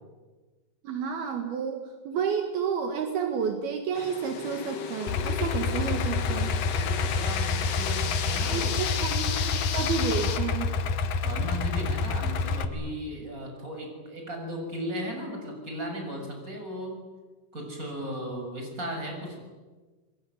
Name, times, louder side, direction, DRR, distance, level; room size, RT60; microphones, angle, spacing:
voice 1, 0.8-6.6 8.5-10.7, right 6 dB, 70° right, 5 dB, 3.6 m, -31 dB
sound 1, 3.9-10.4, left 8 dB, 85° left, 4.1 m, -34 dB
Idling, 5.1-12.6, left 4 dB, 65° left, 2.3 m, -28 dB
voice 2, 5.9-8.8 11.2-17.0 17.5-19.4, equal, 20° right, 2 dB, 7.2 m, -36 dB
25.5 x 22.5 x 9.5 m, 1.3 s
omnidirectional pair, 4.6 m